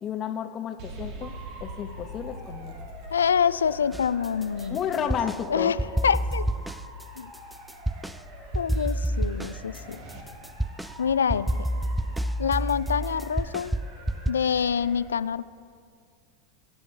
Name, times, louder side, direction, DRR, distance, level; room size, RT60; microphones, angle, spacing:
voice 1, 0.0-1.3 1.6-2.7 4.7-5.8, left 8 dB, 35° left, 6 dB, 1.0 m, -31 dB
sound 1, 0.8-10.2, right 1 dB, 55° right, 2.1 m, -45 dB
Motor vehicle (road) / Siren, 1.2-15.0, right 1 dB, 75° right, 3.5 m, -47 dB
voice 2, 3.1-4.8 5.5-5.8 6.0-6.4 7.2-7.3 8.5-10.0 11.0-11.5 12.4-13.7 14.3-15.5, left 7 dB, 90° left, 17 dB, 0.3 m, -26 dB
sound 2, 3.9-5.4 5.8-8.2 8.5-14.3, right 1 dB, 5° right, 0.3 m, -29 dB
24.0 x 9.0 x 3.3 m, 2.2 s
hypercardioid pair, 95°, 0 cm